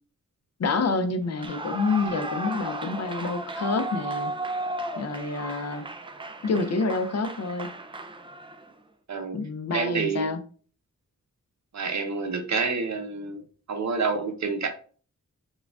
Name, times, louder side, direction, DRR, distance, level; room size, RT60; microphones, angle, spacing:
voice 1, 0.6-4.3 5.0-5.8 6.4-7.7 9.3-10.4, left 4 dB, 55° left, 0.5 m, -28 dB
Clapping / Cheering / Applause, 1.3-8.7, right 2 dB, 15° right, 0.3 m, -35 dB
voice 2, 9.1-9.4 9.7-10.3 11.7-13.4 13.7-14.7, right 4 dB, 60° right, 0.6 m, -28 dB
4.6 x 2.3 x 2.3 m
wide cardioid pair, 110°, 31 cm